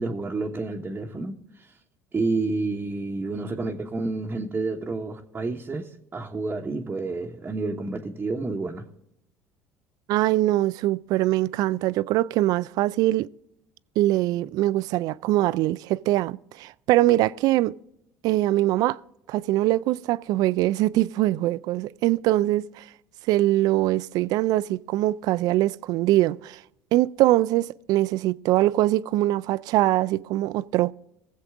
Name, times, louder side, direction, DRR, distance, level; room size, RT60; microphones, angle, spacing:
voice 1, 0.0-1.7 2.1-8.9, right 3 dB, 25° right, 1.2 m, -29 dB
voice 2, 10.1-13.3 14.0-17.7 18.2-19.0 19.3-22.8 23.3-26.6 26.9-30.9, right 16 dB, 65° right, 0.4 m, -22 dB
19.0 x 7.6 x 3.6 m
supercardioid pair, 80°, 7 cm